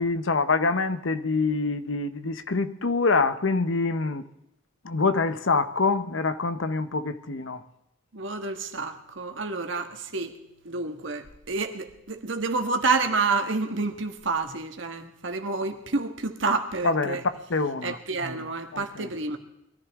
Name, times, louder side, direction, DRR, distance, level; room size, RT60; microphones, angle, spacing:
voice 1, 0.0-4.2 4.8-7.6 16.8-18.0 18.7-19.1, left 3 dB, 75° left, 0.9 m, -25 dB
voice 2, 8.1-10.3 10.6-17.2 17.8-19.4, right 3 dB, 70° right, 1.6 m, -29 dB
22.5 x 14.0 x 3.7 m
head